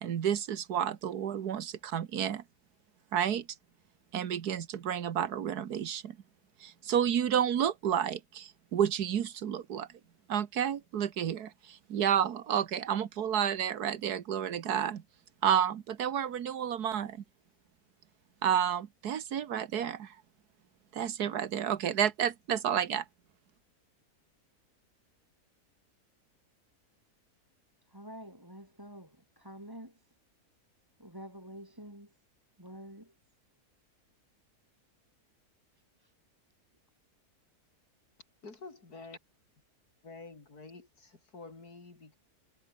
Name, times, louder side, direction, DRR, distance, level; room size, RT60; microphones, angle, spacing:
voice 1, 0.0-2.4 3.1-3.5 4.1-6.2 6.6-9.9 10.3-15.0 15.4-17.2 18.4-20.2 20.9-23.0, right 9 dB, 85° right, 1.7 m, -30 dB
voice 2, 27.9-30.0 31.0-32.1 32.6-33.1 36.0-36.1, equal, 15° right, 4.8 m, -48 dB
voice 3, 38.4-39.2 40.0-42.1, left 3 dB, 75° left, 4.4 m, -48 dB
omnidirectional pair, 1.6 m